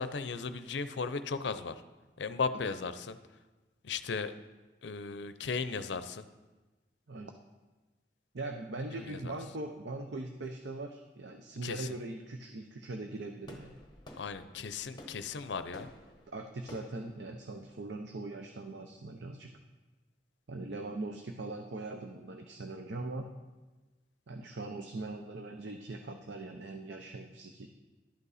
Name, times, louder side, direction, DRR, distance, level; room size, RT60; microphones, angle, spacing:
voice 1, 0.0-1.8 2.2-3.2 3.8-4.3 4.8-6.3 8.9-9.3 11.6-11.9 14.2-15.9, left 4 dB, 75° left, 12 dB, 0.5 m, -36 dB
voice 2, 8.3-13.8 16.3-19.5 20.5-23.3 24.3-27.7, right 2 dB, 70° right, 4 dB, 0.6 m, -41 dB
sound 1, 13.4-18.4, left 1 dB, 25° left, 1.0 m, -54 dB
11.5 x 8.3 x 4.1 m, 1.2 s
head